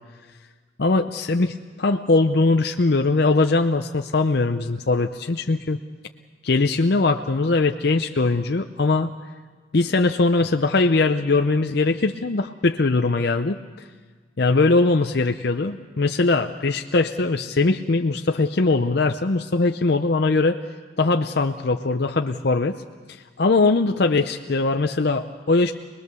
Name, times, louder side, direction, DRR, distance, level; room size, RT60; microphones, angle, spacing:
voice 1, 0.8-5.8 6.4-9.1 9.7-13.9 14.4-20.6 21.0-22.8 23.4-25.7, left 3 dB, 55° left, 6 dB, 0.6 m, -21 dB
26.0 x 20.5 x 6.8 m, 1.5 s
head